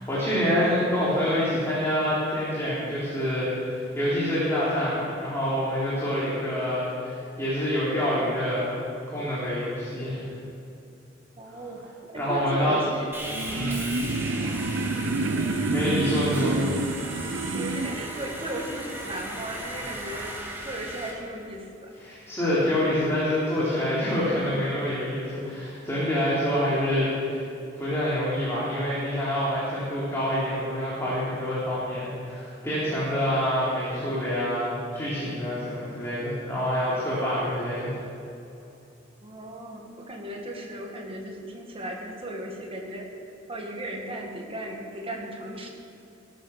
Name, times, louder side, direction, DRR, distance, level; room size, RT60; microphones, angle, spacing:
voice 1, 0.0-8.8 9.1-10.3 12.1-12.8 13.5-13.8 15.7-16.7 22.0-27.4 27.7-38.0, equal, 15° left, -9 dB, 3.4 m, -26 dB
voice 2, 11.4-13.1 13.5-13.7 14.8-15.5 17.5-20.3 20.6-21.9 39.2-43.1 43.5-45.7, right 1 dB, 30° right, 0 dB, 2.0 m, -36 dB
Sawing, 13.1-21.1, right 1 dB, 10° right, 2.6 m, -37 dB
sound 1, 13.2-18.1, right 2 dB, 80° right, 0.7 m, -28 dB
19.0 x 9.2 x 6.5 m, 2.7 s
head